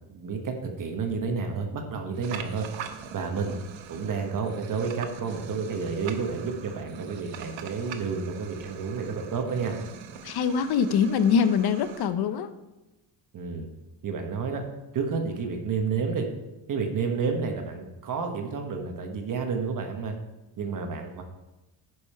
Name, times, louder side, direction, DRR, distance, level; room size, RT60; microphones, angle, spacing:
voice 1, 0.0-2.7 3.1-3.6 3.9-9.7 13.3-13.7 14.0-14.6 14.9-16.3 16.7-20.1 20.6-21.2, right 5 dB, 45° right, 4 dB, 1.2 m, -30 dB
sound 1, 2.1-12.1, right 8 dB, 70° right, 1.0 m, -43 dB
voice 2, 10.2-12.5, left 6 dB, 55° left, 11 dB, 0.7 m, -23 dB
10.5 x 5.3 x 4.4 m, 1.0 s
cardioid pair, 140°, 47 cm